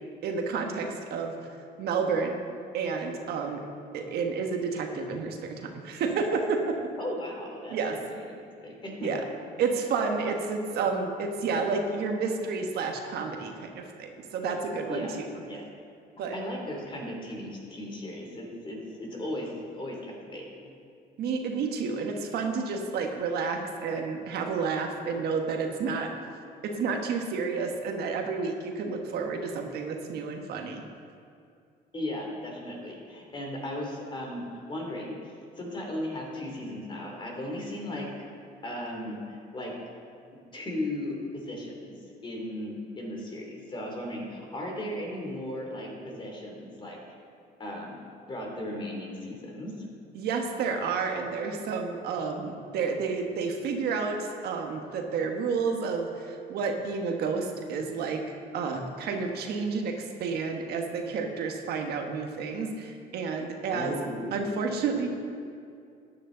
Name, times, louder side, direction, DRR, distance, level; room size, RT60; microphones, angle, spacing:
voice 1, 0.2-1.3 1.8-2.4 2.7-3.6 3.9-6.8 7.7-8.0 9.0-9.2 9.6-15.2 16.2-16.4 21.2-26.1 26.7-30.8 50.1-58.2 58.5-63.9 64.3-65.1, right 5 dB, 70° right, 3 dB, 1.3 m, -30 dB
voice 2, 7.0-8.0 8.3-9.2 10.2-10.3 14.9-15.1 15.5-15.6 16.3-20.7 31.9-35.2 35.6-38.1 38.6-39.7 40.5-42.0 42.2-47.0 47.6-48.0 48.3-49.7 63.7-64.4, left 1 dB, 30° left, -1 dB, 2.9 m, -36 dB
13.5 x 9.6 x 3.9 m, 2.4 s
cardioid pair, 110°, 17 cm